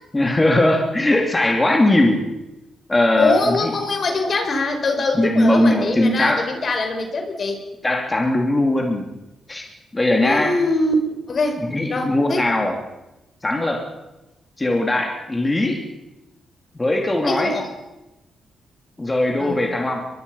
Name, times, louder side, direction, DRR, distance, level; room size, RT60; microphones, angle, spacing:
voice 1, 0.1-2.3 2.9-3.7 5.1-6.4 7.8-9.1 9.5-9.7 9.9-10.6 11.6-12.8 13.4-13.9 14.6-15.8 16.7-17.5 19.0-20.1, left 1 dB, 20° left, 2 dB, 3.1 m, -19 dB
voice 2, 3.2-7.6 10.2-10.9 11.3-11.6 11.9-12.5 17.2-17.7 19.4-19.6, left 3 dB, 50° left, 5 dB, 4.9 m, -22 dB
23.0 x 22.0 x 5.7 m, 0.98 s
cardioid pair, 75°, 0 cm